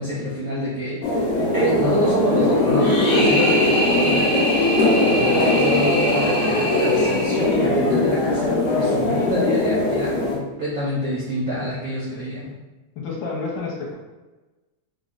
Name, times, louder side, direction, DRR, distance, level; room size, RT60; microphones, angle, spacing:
voice 1, 0.0-12.5, equal, 70° right, -7 dB, 0.8 m, -26 dB
sound 1, 1.0-10.4, left 2 dB, 85° left, 0.7 m, -20 dB
sound 2, 2.8-7.9, equal, 50° left, 1.1 m, -25 dB
voice 2, 12.9-13.9, left 4 dB, 70° left, -3 dB, 1.3 m, -29 dB
3.5 x 2.1 x 3.7 m, 1.2 s
omnidirectional pair, 2.4 m